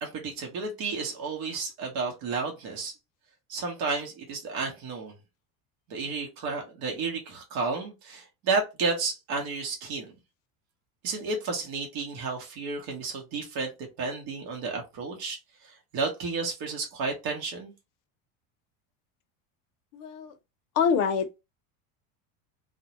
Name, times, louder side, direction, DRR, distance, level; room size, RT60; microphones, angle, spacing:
voice 1, 0.0-2.9 3.5-5.1 5.9-10.1 11.0-13.7 14.0-15.4 15.6-17.7, right 4 dB, 55° right, 0.9 m, -32 dB
voice 2, 19.9-20.3 20.8-21.4, left 6 dB, 50° left, 0.5 m, -25 dB
2.2 x 2.1 x 2.8 m
supercardioid pair, 110°, 43 cm